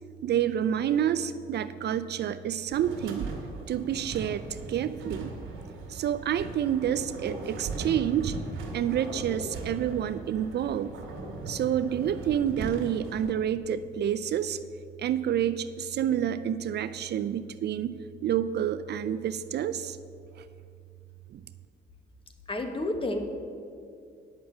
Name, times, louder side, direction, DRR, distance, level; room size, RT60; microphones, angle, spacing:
voice 1, 0.2-3.3 3.7-5.3 5.9-8.3 8.7-10.9 11.5-14.6 15.0-20.0 21.3-21.4, right 9 dB, 55° right, 12 dB, 0.4 m, -28 dB
sound 1, 2.7-13.3, right 3 dB, 80° right, 2.0 m, -39 dB
voice 2, 22.5-23.2, left 2 dB, 25° left, 5 dB, 1.3 m, -30 dB
9.3 x 6.2 x 7.2 m, 2.3 s
cardioid pair, 90°, 20 cm